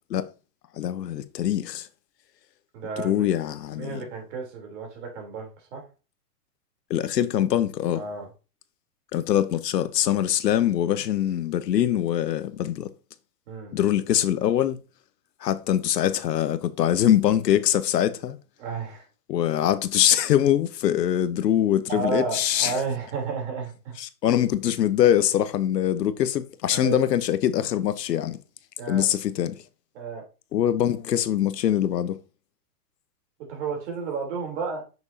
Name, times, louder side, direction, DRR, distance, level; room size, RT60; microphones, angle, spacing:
voice 1, 0.8-1.9 3.0-4.0 6.9-8.0 9.1-12.9 13.7-14.8 15.4-18.4 19.3-22.7 24.0-28.4 28.9-29.6 30.5-32.2, left 11 dB, 90° left, 0.9 m, -23 dB
voice 2, 2.7-3.3 3.8-5.8 7.9-8.3 13.5-13.8 18.6-19.0 21.9-23.9 26.7-27.0 28.8-29.1 29.9-30.2 33.5-34.8, right 4 dB, 50° right, 3.3 m, -32 dB
7.0 x 6.2 x 2.7 m
hypercardioid pair, 150°, 48 cm